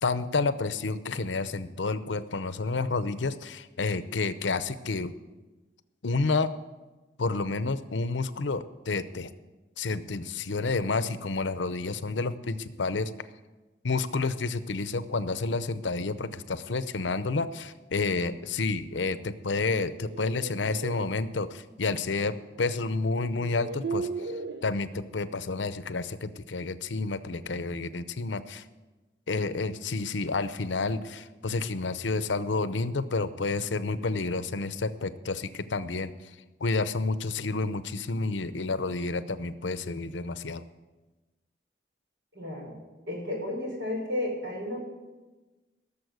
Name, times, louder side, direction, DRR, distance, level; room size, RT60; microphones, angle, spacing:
voice 1, 0.0-5.1 6.0-6.5 7.2-9.3 9.8-13.1 13.8-24.1 24.6-28.6 29.3-36.1 36.6-40.6, left 3 dB, 85° left, 13 dB, 0.7 m, -30 dB
sound 1, 19.7-21.1 22.5-22.6 23.3-24.7, right 4 dB, 70° right, 0.9 m, -36 dB
voice 2, 42.3-42.7 43.1-44.8, left 1 dB, 90° right, -1 dB, 6.0 m, -32 dB
17.5 x 7.1 x 8.1 m, 1.2 s
head